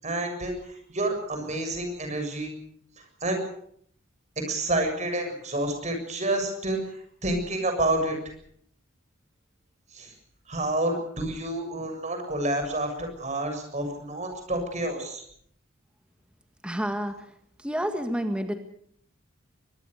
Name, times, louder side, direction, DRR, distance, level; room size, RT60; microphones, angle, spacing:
voice 1, 0.0-2.5 3.0-3.4 4.5-8.2 9.9-10.1 10.5-15.2, right 1 dB, 35° right, 5 dB, 7.1 m, -29 dB
voice 2, 16.6-17.2 17.6-18.5, equal, 5° right, 6 dB, 1.8 m, -29 dB
24.5 x 21.0 x 6.7 m, 0.66 s
head